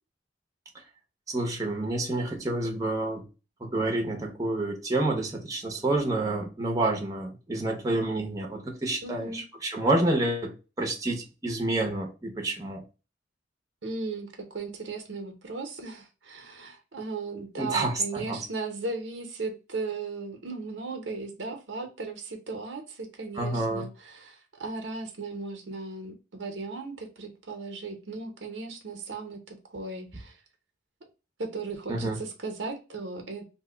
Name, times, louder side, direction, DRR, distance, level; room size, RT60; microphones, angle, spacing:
voice 1, 1.3-3.2 3.6-12.8 17.6-18.4 23.4-23.8 31.9-32.2, right 2 dB, 20° right, 0.7 m, -28 dB
voice 2, 9.0-9.4 13.8-30.3 31.4-33.4, right 3 dB, 80° right, 0.8 m, -37 dB
2.6 x 2.1 x 3.7 m
head